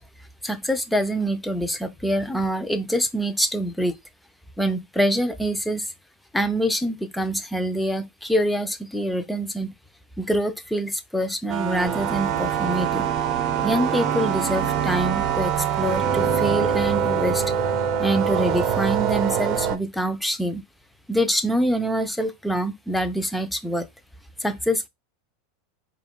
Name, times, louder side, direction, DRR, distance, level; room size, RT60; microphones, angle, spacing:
voice 1, 0.4-4.0 4.6-5.9 6.3-9.7 10.2-13.1 13.6-17.4 18.0-20.6 21.1-23.9 24.4-24.9, equal, 5° left, 0.5 m, -25 dB
sound 1, 11.5-19.8, right 8 dB, 45° right, 0.6 m, -24 dB
4.4 x 2.4 x 3.6 m
hypercardioid pair, 115°, 0 cm